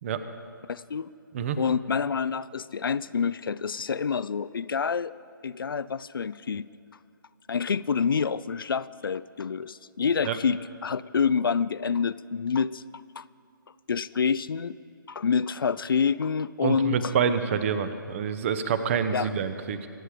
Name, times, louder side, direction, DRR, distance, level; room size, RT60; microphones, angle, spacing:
voice 1, 0.7-1.1 1.6-5.1 5.4-6.7 7.5-12.8 13.2-13.3 13.9-14.8 15.1-17.1 19.1-19.3, left 6 dB, 75° left, 17 dB, 0.4 m, -27 dB
voice 2, 16.6-19.9, right 7 dB, 35° right, 11 dB, 0.9 m, -27 dB
24.5 x 8.5 x 5.0 m, 2.6 s
figure-of-eight pair, 145°, 12 cm